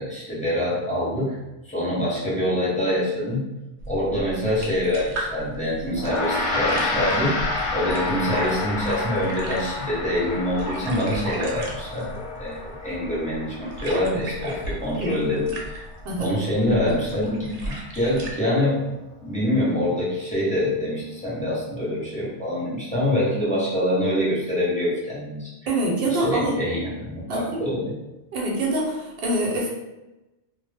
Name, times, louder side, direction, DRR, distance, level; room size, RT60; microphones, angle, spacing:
voice 1, 0.0-1.4 1.6-3.4 3.9-7.3 7.7-15.8 16.2-18.9 19.2-25.5 26.2-27.9, left 1 dB, 5° left, -9 dB, 0.7 m, -25 dB
sound 1, 3.8-18.4, right 1 dB, 85° right, 0.9 m, -36 dB
Gong, 6.0-15.6, left 2 dB, 85° left, 1.0 m, -30 dB
voice 2, 25.7-26.6 27.3-27.6 28.3-29.7, right 1 dB, 60° right, -2 dB, 0.8 m, -25 dB
2.1 x 2.0 x 3.3 m, 1.0 s
omnidirectional pair, 1.2 m